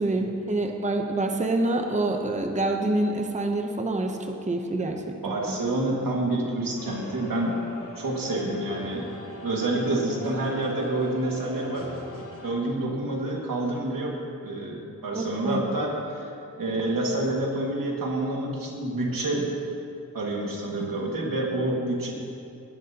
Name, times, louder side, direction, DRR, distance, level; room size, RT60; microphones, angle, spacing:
voice 1, 0.0-5.6 15.1-15.6, right 2 dB, 20° right, 4 dB, 0.8 m, -27 dB
voice 2, 5.2-7.6 8.0-9.1 9.4-11.9 12.4-14.1 14.4-19.5 20.1-22.1, right 2 dB, 90° right, -2 dB, 2.0 m, -28 dB
sound 1, 6.8-12.5, left 2 dB, 75° left, 2.1 m, -41 dB
18.5 x 10.5 x 2.9 m, 2.6 s
wide cardioid pair, 125°, 33 cm